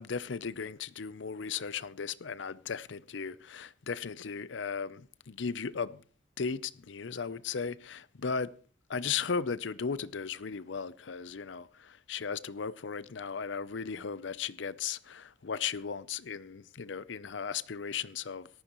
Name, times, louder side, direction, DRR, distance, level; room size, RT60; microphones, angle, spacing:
voice 1, 0.0-6.0 6.4-8.5 8.9-18.5, left 6 dB, 80° left, 0.6 m, -36 dB
18.5 x 14.0 x 3.1 m
head